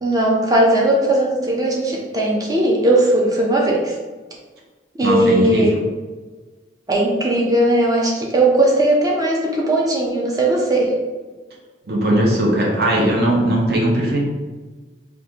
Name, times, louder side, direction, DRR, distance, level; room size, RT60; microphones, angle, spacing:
voice 1, 0.0-3.9 5.0-5.7 6.9-10.9, right 1 dB, 20° right, -2 dB, 0.6 m, -18 dB
voice 2, 5.0-5.8 11.9-14.2, right 1 dB, 60° right, -3 dB, 0.7 m, -18 dB
3.6 x 2.5 x 2.8 m, 1.3 s
head